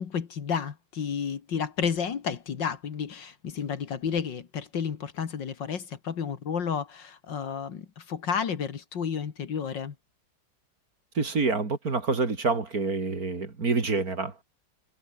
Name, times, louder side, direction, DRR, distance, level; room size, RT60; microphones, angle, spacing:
voice 1, 0.0-10.0, left 7 dB, 60° left, 2.3 m, -31 dB
voice 2, 11.1-14.3, right 4 dB, 45° right, 3.2 m, -27 dB
omnidirectional pair, 2.2 m